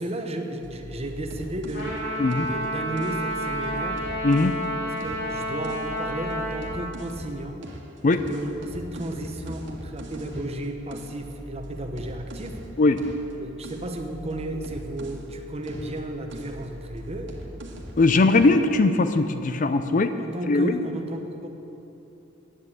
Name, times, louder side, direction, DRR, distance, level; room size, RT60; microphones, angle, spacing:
voice 1, 0.0-2.0 2.4-4.1 5.0-7.7 8.2-12.6 13.4-17.3 20.2-21.5, right 1 dB, 30° right, 4 dB, 1.0 m, -33 dB
sound 1, 0.6-4.6 5.0-7.3 7.6-15.3 15.6-18.0 18.3-18.6, equal, 65° right, 1.6 m, -41 dB
Trumpet, 1.7-6.8, right 1 dB, 60° left, 3.5 m, -30 dB
voice 2, 18.0-20.1 20.5-20.8, left 3 dB, 40° left, 10 dB, 0.5 m, -20 dB
10.0 x 9.3 x 8.0 m, 3.0 s
head